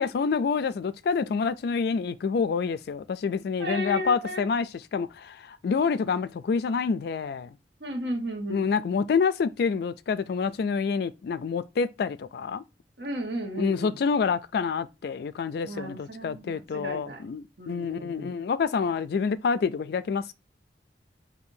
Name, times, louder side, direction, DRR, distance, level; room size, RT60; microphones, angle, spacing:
voice 1, 0.0-7.5 8.5-12.6 13.6-20.3, left 5 dB, 60° left, 0.3 m, -27 dB
voice 2, 3.6-4.4 7.8-8.7 13.0-14.0 15.6-17.2 17.6-18.3, equal, 65° right, 1.2 m, -34 dB
6.8 x 2.7 x 2.6 m
head